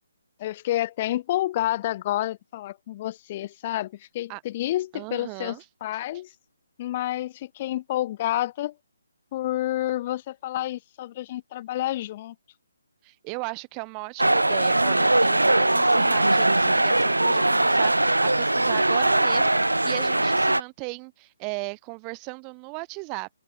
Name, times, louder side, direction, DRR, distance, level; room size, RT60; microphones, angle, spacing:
voice 1, 0.4-6.3 6.8-8.7 9.3-12.4, left 14 dB, 30° left, 0.5 m, -29 dB
voice 2, 4.9-5.6 13.0-23.3, right 37 dB, 20° right, 0.8 m, -36 dB
sound 1, 14.2-20.6, right 2 dB, 75° right, 0.3 m, -21 dB
open air
figure-of-eight pair, 140°, 0 cm